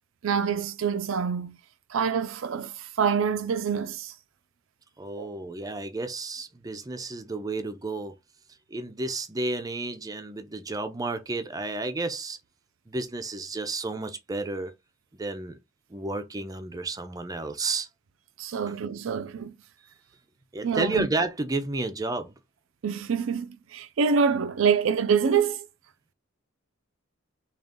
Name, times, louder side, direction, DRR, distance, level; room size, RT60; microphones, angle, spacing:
voice 1, 0.2-1.6 1.9-4.1 5.2-5.3 18.4-19.5 20.6-21.1 22.8-25.7, right 6 dB, 75° right, 0.4 m, -26 dB
voice 2, 5.0-8.1 8.7-12.4 12.9-14.7 15.2-15.6 15.9-17.9 20.5-22.3, right 2 dB, 20° right, 0.5 m, -31 dB
3.8 x 2.4 x 3.5 m
head